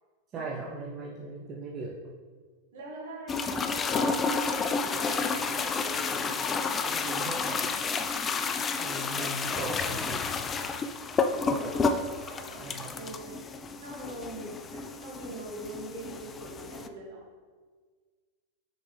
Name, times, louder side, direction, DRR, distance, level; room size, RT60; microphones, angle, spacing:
voice 1, 0.3-1.9 6.7-7.6 8.8-10.3 12.6-12.9, right 3 dB, 30° right, -3 dB, 0.8 m, -38 dB
voice 2, 2.7-4.5 4.8-6.4 11.3-13.5 13.8-17.2, right 1 dB, 60° right, -3 dB, 1.9 m, -43 dB
sound 1, 3.3-16.9, left 4 dB, 20° left, 0.4 m, -31 dB
6.5 x 5.1 x 3.3 m, 1.5 s
figure-of-eight pair, 90°, 0 cm